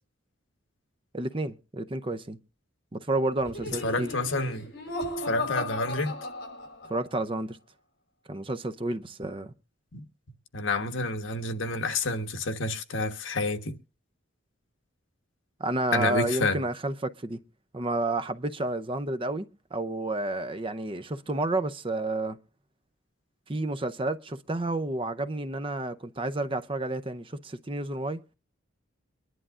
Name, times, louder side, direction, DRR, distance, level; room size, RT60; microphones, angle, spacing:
voice 1, 1.1-2.4 2.9-4.1 6.9-7.6 8.3-9.5 15.6-17.4 17.7-22.4 23.5-28.2, right 2 dB, 25° right, 0.6 m, -30 dB
Laughter, 3.4-7.1, left 1 dB, 55° left, 5.6 m, -36 dB
voice 2, 3.7-4.7 5.3-6.2 9.9-10.0 10.5-13.8 15.9-16.6, left 3 dB, 70° left, 1.3 m, -29 dB
24.0 x 11.0 x 2.4 m
head